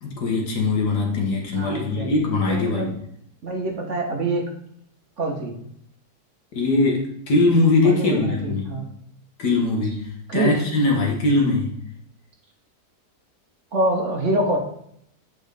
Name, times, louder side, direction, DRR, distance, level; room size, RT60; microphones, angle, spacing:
voice 1, 0.0-2.9 6.5-8.8 9.4-11.8, left 2 dB, 80° left, 0 dB, 2.1 m, -21 dB
voice 2, 1.5-2.9 3.4-4.4 5.2-5.6 7.8-8.8 10.3-10.6 13.7-14.6, right 1 dB, 50° right, 1 dB, 1.4 m, -25 dB
8.8 x 5.3 x 3.4 m, 0.70 s
omnidirectional pair, 1.7 m